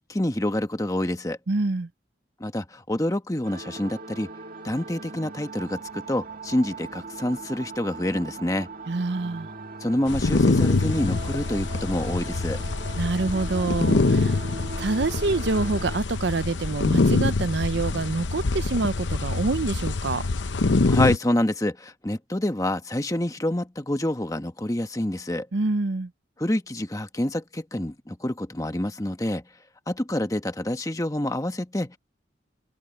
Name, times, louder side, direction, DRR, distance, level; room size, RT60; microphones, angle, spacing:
voice 1, 0.0-1.4 2.4-4.3 4.6-8.7 9.8-12.6 20.9-25.5 26.4-29.4 29.9-32.0, left 1 dB, 20° left, 1.2 m, -27 dB
voice 2, 1.5-1.9 8.9-9.5 13.0-14.4 14.8-20.2 25.5-26.1, right 3 dB, 70° right, 0.7 m, -26 dB
sound 1, 3.4-16.0, right 3 dB, 50° right, 2.7 m, -39 dB
sound 2, 10.1-21.2, left 3 dB, 80° left, 0.8 m, -25 dB
open air
head